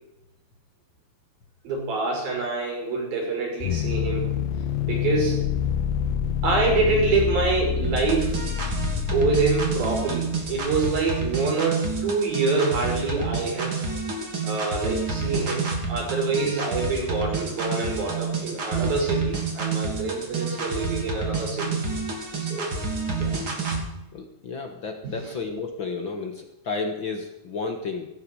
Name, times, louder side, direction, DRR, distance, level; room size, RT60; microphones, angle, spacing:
voice 1, 1.6-4.3 4.8-5.4 6.4-8.4 9.1-13.9 14.4-22.0 22.4-22.8 23.2-23.3 25.0-25.3, right 3 dB, 75° right, -2 dB, 7.9 m, -26 dB
sound 1, 3.6-10.8, left 8 dB, 90° left, 2.7 m, -27 dB
sound 2, 7.8-23.8, right 4 dB, 35° right, 3.3 m, -29 dB
voice 2, 24.1-28.1, left 4 dB, 60° left, 5 dB, 1.2 m, -32 dB
17.0 x 16.0 x 4.8 m, 0.90 s
omnidirectional pair, 4.3 m